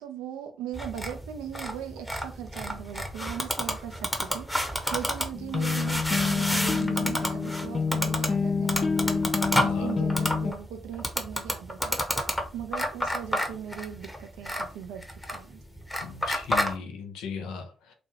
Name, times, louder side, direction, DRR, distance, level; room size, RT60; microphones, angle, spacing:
voice 1, 0.0-4.5 4.9-9.3 9.6-12.0 12.5-15.6, right 9 dB, 85° right, 0.4 m, -39 dB
sound 1, 0.7-16.7, equal, 10° left, 0.9 m, -31 dB
sound 2, 5.3-10.5, left 5 dB, 45° left, 0.3 m, -27 dB
voice 2, 9.6-9.9 16.0-17.9, left 5 dB, 80° left, 0.6 m, -37 dB
3.0 x 2.2 x 2.8 m
hypercardioid pair, 45°, 0 cm